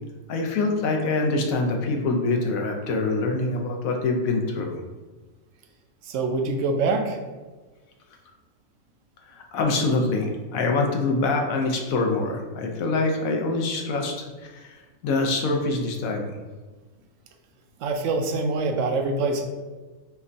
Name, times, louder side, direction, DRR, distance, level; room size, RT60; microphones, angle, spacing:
voice 1, 0.3-4.8 9.3-16.3, left 3 dB, 75° left, 2 dB, 1.0 m, -25 dB
voice 2, 6.0-7.2 17.8-19.4, right 3 dB, 70° right, 4 dB, 0.8 m, -25 dB
5.8 x 2.2 x 2.6 m, 1.3 s
omnidirectional pair, 1.5 m